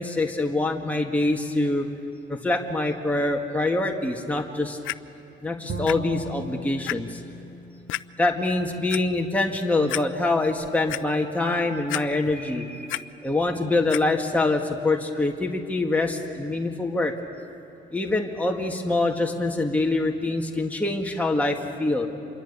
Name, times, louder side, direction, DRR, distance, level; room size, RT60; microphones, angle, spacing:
voice 1, 0.0-1.9 2.3-4.8 5.4-7.2 8.2-17.1 17.9-22.1, left 2 dB, 5° left, 1 dB, 1.9 m, -25 dB
Clock, 4.8-4.9 5.9-6.0 6.4-6.5 6.9-7.0 7.9-8.0 8.7-9.0 9.5-9.6 9.9-10.0 10.5-11.0 11.9-12.4 12.7-13.0 13.9-14.0 14.7-14.8, left 16 dB, 80° left, 0.5 m, -30 dB
Bowed string instrument, 5.7-8.8, right 1 dB, 65° right, 4.7 m, -37 dB
27.0 x 22.5 x 8.3 m, 2.8 s
cardioid pair, 90°, 20 cm